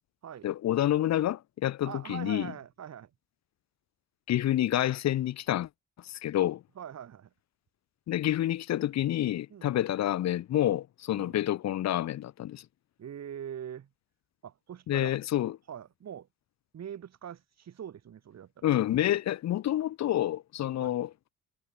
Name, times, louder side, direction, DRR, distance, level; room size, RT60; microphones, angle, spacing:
voice 1, 0.4-2.5 4.3-5.7 6.0-6.6 8.1-12.6 14.9-15.6 18.6-21.1, left 12 dB, 60° left, 0.8 m, -28 dB
voice 2, 1.8-3.1 6.8-7.3 9.5-9.8 11.1-11.4 13.0-13.9 14.4-16.3 16.7-18.7 20.8-21.0, right 9 dB, 60° right, 5.6 m, -43 dB
cardioid pair, 90°, 30 cm